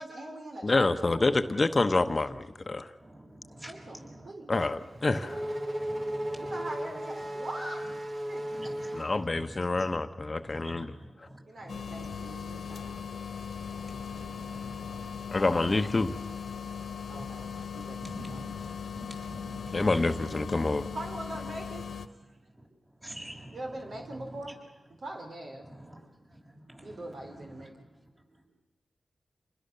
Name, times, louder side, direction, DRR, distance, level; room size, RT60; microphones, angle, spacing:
voice 1, 0.0-1.4 3.7-4.5 6.4-7.8 8.3-8.5 11.5-12.9 15.3-15.9 17.1-18.4 20.9-21.9 23.5-24.5 25.0-25.7 26.6-27.7, right 1 dB, 65° right, 2 dB, 3.8 m, -42 dB
voice 2, 0.6-2.9 4.5-5.4 8.9-10.8 15.3-16.1 19.7-20.8, left 3 dB, 40° left, 9 dB, 1.0 m, -27 dB
voice 3, 3.0-4.3 4.9-5.0 5.3-6.6 8.5-10.0 10.4-12.1 13.7-15.2 16.2-16.3 16.6-17.2 17.7-20.0 20.4-20.9 22.3-24.6 25.0-25.1 25.6-28.5, right 1 dB, 30° right, 0 dB, 6.6 m, -49 dB
Race car auto racing / Accelerating revving vroom, 4.6-9.8, equal, 50° right, 2.3 m, -36 dB
sound 1, 11.7-22.1, left 6 dB, 75° left, 1.3 m, -39 dB
27.0 x 20.5 x 6.8 m, 1.1 s
cardioid pair, 45°, 0 cm